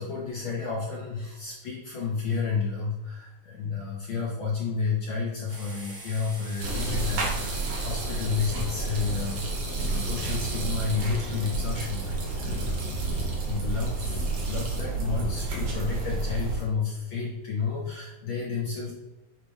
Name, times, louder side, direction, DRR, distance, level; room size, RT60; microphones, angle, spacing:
voice 1, 0.0-12.7 13.1-18.9, left 5 dB, 75° left, -3 dB, 1.1 m, -31 dB
sound 1, 5.5-9.4, right 1 dB, 30° right, 1.9 m, -44 dB
sound 2, 6.6-14.8, right 3 dB, 55° right, 1.5 m, -41 dB
sound 3, 6.6-16.6, right 3 dB, 80° right, 3.2 m, -30 dB
9.4 x 3.6 x 3.5 m, 1.0 s
omnidirectional pair, 3.4 m